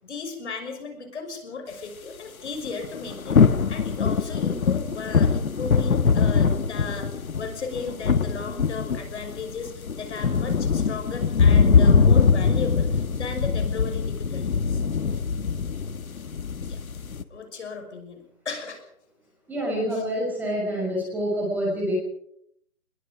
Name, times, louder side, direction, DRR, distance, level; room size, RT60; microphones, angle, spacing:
voice 1, 0.0-3.4 3.7-7.1 7.4-14.8 16.7-16.8 17.3-18.8 19.9-20.0, left 4 dB, 50° left, 6 dB, 6.1 m, -35 dB
sound 1, 2.7-17.2, left 5 dB, 70° left, 1.7 m, -22 dB
voice 2, 19.5-21.9, equal, 5° right, -4 dB, 6.1 m, -27 dB
24.0 x 22.0 x 5.2 m, 0.71 s
hypercardioid pair, 165°, 43 cm